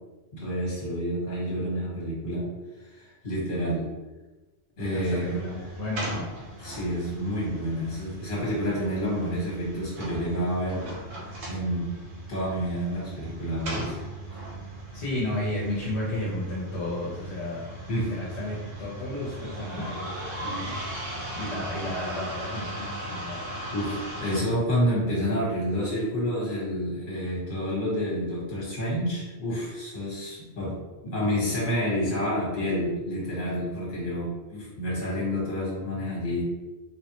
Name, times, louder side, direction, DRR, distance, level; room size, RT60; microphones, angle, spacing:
voice 1, 0.3-2.4 2.8-3.9 4.8-5.4 6.6-10.9 11.5-11.9 12.3-14.0 17.9-18.1 23.7-30.8 31.0-36.4, equal, 50° left, -6 dB, 1.3 m, -29 dB
sound 1, 4.8-24.4, right 1 dB, 80° right, 1.1 m, -38 dB
voice 2, 4.9-6.3 14.9-17.7 18.0-20.8 21.4-23.4, left 1 dB, 75° left, -6 dB, 1.0 m, -33 dB
3.4 x 2.0 x 2.9 m, 1.1 s
omnidirectional pair, 1.2 m